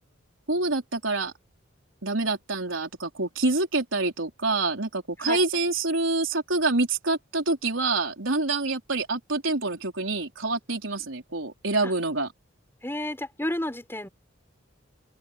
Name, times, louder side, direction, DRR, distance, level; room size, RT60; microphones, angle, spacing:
voice 1, 0.5-1.3 2.0-12.3, right 3 dB, 85° right, 4.1 m, -26 dB
voice 2, 12.8-14.1, left 1 dB, 10° left, 4.7 m, -31 dB
open air
head